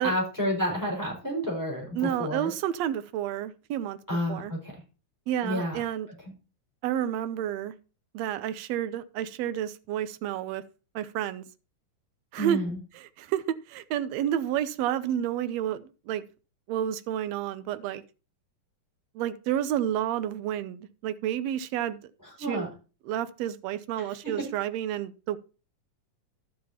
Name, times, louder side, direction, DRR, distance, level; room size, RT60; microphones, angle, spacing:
voice 1, 0.0-2.5 4.1-4.7 5.4-5.8 12.4-12.8 22.4-22.7 24.0-24.4, equal, 5° right, 4.8 m, -30 dB
voice 2, 2.0-4.0 4.3-4.5 5.3-6.1 6.8-7.7 8.1-10.6 11.0-11.4 12.3-12.6 13.0-16.2 16.7-18.0 19.2-22.0 22.4-22.7 23.1-25.4, right 10 dB, 75° right, 1.7 m, -30 dB
12.5 x 7.6 x 2.8 m
omnidirectional pair, 3.4 m